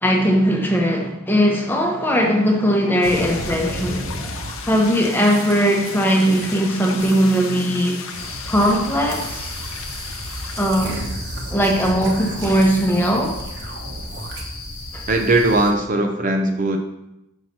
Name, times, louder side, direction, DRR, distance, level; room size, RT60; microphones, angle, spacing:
voice 1, 0.0-4.1 4.6-8.0 8.5-9.5 10.6-11.0 11.5-13.4 14.9-15.0, equal, 10° left, 0 dB, 0.9 m, -19 dB
sound 1, 3.0-10.6, left 6 dB, 70° left, 0.7 m, -35 dB
sound 2, 3.0-4.7 5.2-5.6 5.8-6.7 7.0-8.8 9.1-14.4, right 2 dB, 55° right, 1.2 m, -35 dB
sound 3, 8.2-15.7, left 1 dB, 45° left, 1.2 m, -33 dB
voice 2, 15.1-16.8, right 2 dB, 35° right, 3 dB, 0.5 m, -19 dB
6.3 x 5.9 x 4.2 m, 0.89 s
head